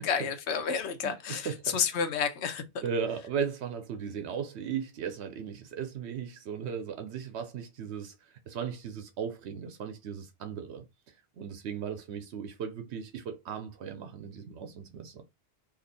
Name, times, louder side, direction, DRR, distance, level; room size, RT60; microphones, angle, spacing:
voice 1, 0.0-2.8, left 6 dB, 85° left, 1.0 m, -30 dB
voice 2, 1.0-1.8 2.8-15.2, right 7 dB, 85° right, 0.9 m, -37 dB
2.8 x 2.5 x 3.9 m
omnidirectional pair, 1.1 m